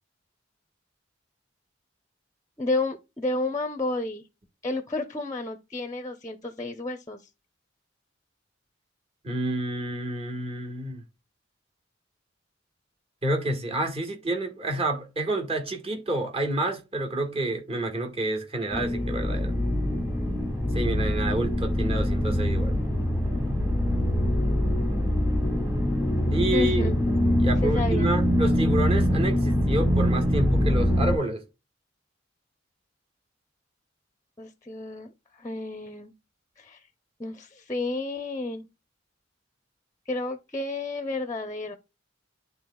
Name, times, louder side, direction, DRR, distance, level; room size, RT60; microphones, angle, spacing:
voice 1, 2.6-4.2 4.6-7.2 26.5-27.0 27.6-28.1 34.4-36.1 36.6-36.8 37.2-38.7 40.1-41.8, left 2 dB, 15° left, 0.7 m, -31 dB
voice 2, 9.2-11.0 13.2-19.5 20.7-22.8 26.3-26.9 27.4-31.4, right 1 dB, 30° right, 1.7 m, -29 dB
sound 1, 18.7-31.2, equal, 15° right, 1.9 m, -24 dB
11.0 x 4.0 x 2.3 m
head